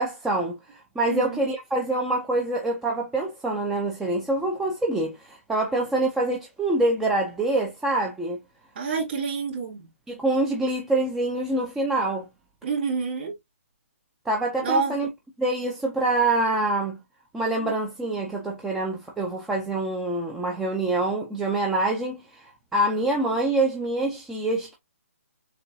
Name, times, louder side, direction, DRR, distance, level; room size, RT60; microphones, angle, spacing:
voice 1, 0.0-8.4 10.1-12.3 14.3-15.1 15.4-17.0 17.3-24.8, right 2 dB, 5° right, 0.3 m, -25 dB
voice 2, 8.8-9.8 12.6-13.3 14.6-14.9, right 4 dB, 40° right, 2.1 m, -27 dB
6.7 x 2.2 x 2.6 m
hypercardioid pair, 165°, 8 cm